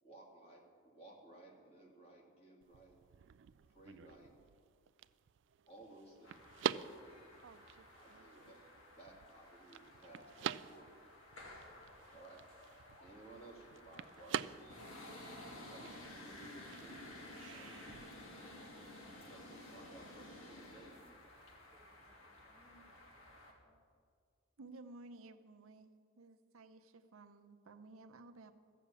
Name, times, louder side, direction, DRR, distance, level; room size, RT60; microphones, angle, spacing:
voice 1, 0.0-3.0 3.7-4.3 5.7-6.8 7.2-7.4 7.9-8.6 8.9-10.9 12.1-12.4 13.0-14.8 15.3-18.0 18.6-18.8 19.2-21.0, right 2 dB, 30° left, -1 dB, 2.2 m, -58 dB
sound 1, 2.6-18.1, right 8 dB, 60° right, 0.3 m, -47 dB
sound 2, 6.2-23.5, left 1 dB, 80° left, 2.0 m, -54 dB
voice 2, 21.7-23.8, right 1 dB, 5° right, 1 dB, 0.5 m, -71 dB
voice 3, 24.6-25.9 26.2-28.5, right 2 dB, 85° right, 7 dB, 0.8 m, -55 dB
14.5 x 7.1 x 8.4 m, 2.2 s
head